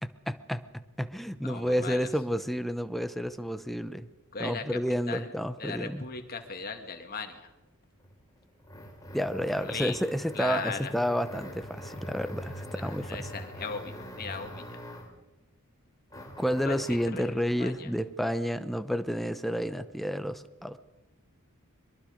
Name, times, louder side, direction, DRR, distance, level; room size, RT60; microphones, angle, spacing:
voice 1, 0.0-0.6 1.0-4.1 4.4-6.0 9.1-13.3 16.4-20.8, equal, ahead, 11 dB, 0.8 m, -30 dB
voice 2, 1.4-2.1 4.3-4.6 5.1-5.3 5.6-7.5 9.5-10.0 10.3-10.9 12.8-14.8 16.6-17.9, left 5 dB, 45° left, 6 dB, 2.2 m, -38 dB
sound 1, 8.0-15.2 16.1-17.2, equal, 15° left, 3.3 m, -43 dB
23.0 x 22.5 x 5.2 m, 1.1 s
head